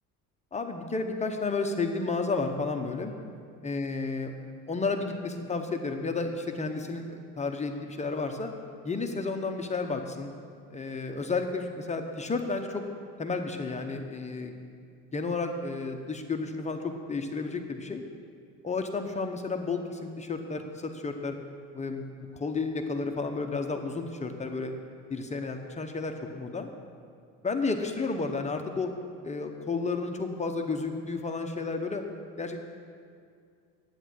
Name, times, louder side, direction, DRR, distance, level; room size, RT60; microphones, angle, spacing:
voice 1, 0.5-3.1 3.6-4.3 4.7-8.5 8.8-10.3 10.7-12.8 13.2-14.5 15.1-18.0 18.6-21.4 21.7-22.1 22.3-24.7 25.1-26.7 27.4-28.9 29.2-32.0 32.4-32.6, left 3 dB, 20° left, 4 dB, 0.9 m, -32 dB
10.5 x 9.4 x 7.7 m, 2.3 s
cardioid pair, 130°, 33 cm